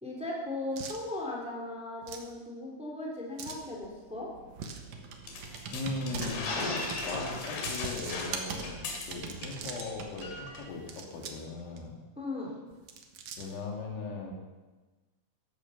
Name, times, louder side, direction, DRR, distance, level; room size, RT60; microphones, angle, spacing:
voice 1, 0.0-4.3 12.2-12.5, left 2 dB, ahead, -3 dB, 2.6 m, -37 dB
sound 1, 0.7-1.0 2.0-2.3 3.4-3.7 4.5-4.9 6.0-6.4 7.6-8.3 9.2-9.9 10.7-11.5 11.8-11.9 12.7-13.6, right 6 dB, 85° right, 1.5 m, -44 dB
Computer keyboard, 3.8-10.8, right 5 dB, 60° right, 2.3 m, -43 dB
sound 2, 5.3-9.5 9.8-9.9 10.2-10.6, left 3 dB, 65° left, 4.2 m, -36 dB
voice 2, 5.7-6.5 7.1-8.8 9.1-12.0 13.4-14.3, left 3 dB, 85° left, 0 dB, 4.8 m, -38 dB
15.0 x 12.0 x 6.0 m, 1.2 s
omnidirectional pair, 5.2 m